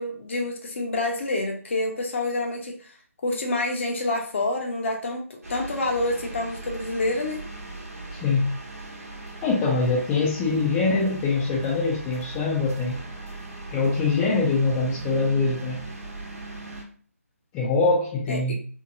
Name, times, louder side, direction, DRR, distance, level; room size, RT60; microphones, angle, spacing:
voice 1, 0.0-2.7 3.2-7.4 18.3-18.5, left 2 dB, 50° left, 1 dB, 0.7 m, -27 dB
sound 1, 5.4-16.8, right 2 dB, 80° right, 1.0 m, -39 dB
voice 2, 8.2-8.6 9.4-13.0 13.7-15.8 17.5-18.5, left 3 dB, 15° left, -5 dB, 0.4 m, -23 dB
2.7 x 2.2 x 2.6 m, 0.43 s
figure-of-eight pair, 155°, 8 cm